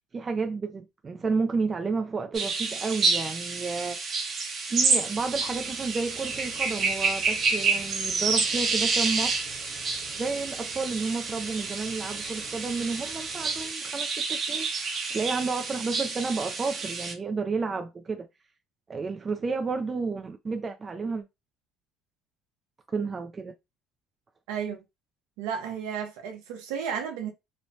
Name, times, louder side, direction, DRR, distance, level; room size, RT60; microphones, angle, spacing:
voice 1, 0.1-4.0 4.7-9.5 10.1-18.3 18.9-21.2 22.9-23.5, right 4 dB, 30° right, 0.4 m, -31 dB
sound 1, 2.3-17.1, right 4 dB, 45° right, 0.8 m, -29 dB
sound 2, 5.1-13.7, right 2 dB, 70° right, 1.3 m, -49 dB
voice 2, 24.5-24.8 25.4-27.3, right 7 dB, 85° right, 0.8 m, -33 dB
3.1 x 2.1 x 2.7 m
supercardioid pair, 90°, 0 cm